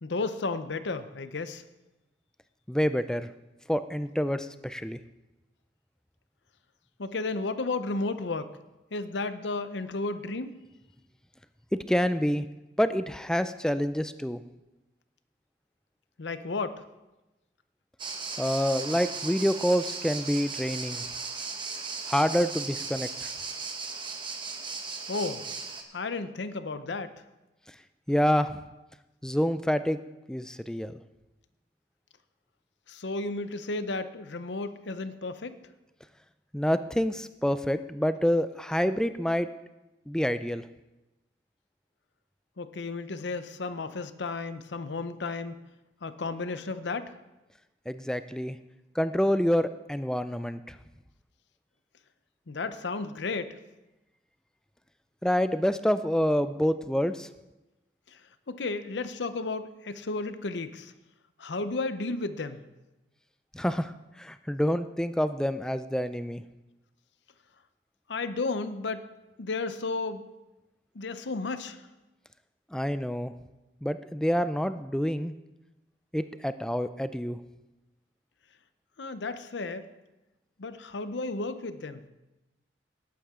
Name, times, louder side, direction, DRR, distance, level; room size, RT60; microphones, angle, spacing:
voice 1, 0.0-1.6 7.0-8.6 8.9-10.5 16.2-16.8 25.1-25.4 25.9-27.1 32.9-35.6 42.6-45.6 46.0-47.1 52.5-53.6 58.5-60.9 61.4-62.6 68.1-69.1 69.4-70.2 70.9-71.8 79.0-79.9 80.6-82.1, left 3 dB, 85° left, 11 dB, 0.7 m, -33 dB
voice 2, 2.7-3.3 3.7-5.0 11.9-12.5 12.8-14.4 18.4-21.1 22.1-23.3 28.1-28.6 29.2-30.0 30.3-31.0 36.5-39.5 40.1-40.7 47.9-48.6 49.0-50.8 55.2-57.3 63.5-63.9 64.2-66.4 72.7-73.3 73.8-75.4 76.1-77.4, equal, 5° left, 12 dB, 0.4 m, -27 dB
sound 1, 18.0-25.8, right 4 dB, 25° right, 1.0 m, -36 dB
18.5 x 8.6 x 3.7 m, 1.0 s
head